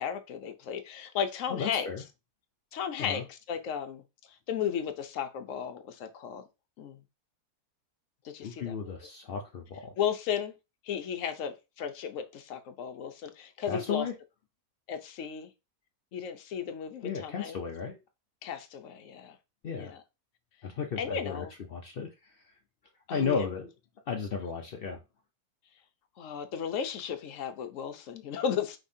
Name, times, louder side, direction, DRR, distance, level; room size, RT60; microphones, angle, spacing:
voice 1, 0.0-1.9 2.7-4.0 4.3-6.4 6.8-7.0 8.2-8.9 10.0-10.5 10.8-14.1 14.9-15.5 16.1-17.6 18.4-19.4 19.8-20.0 21.0-21.5 23.1-23.5 26.2-28.8, left 8 dB, 60° left, 1.0 m, -34 dB
voice 2, 1.5-2.0 3.0-3.2 8.4-9.9 13.7-14.1 17.0-18.0 19.6-19.9 20.6-21.4 21.7-22.3 23.1-23.7 24.1-25.0, left 6 dB, 85° left, 0.5 m, -34 dB
5.2 x 3.3 x 2.7 m
omnidirectional pair, 1.7 m